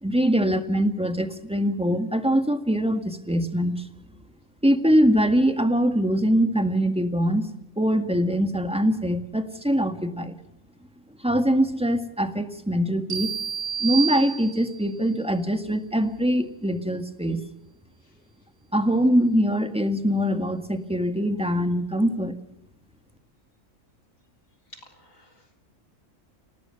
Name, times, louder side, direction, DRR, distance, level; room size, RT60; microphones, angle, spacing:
voice 1, 0.0-3.9 4.6-7.5 7.8-10.4 11.2-13.3 13.8-17.4 18.7-22.4, equal, 5° right, 7 dB, 1.8 m, -23 dB
sound 1, 13.1-14.9, right 7 dB, 75° right, 3.9 m, -30 dB
voice 2, 24.7-25.6, left 1 dB, 90° left, 3 dB, 4.0 m, -51 dB
27.5 x 18.5 x 6.7 m, 0.85 s
omnidirectional pair, 1.4 m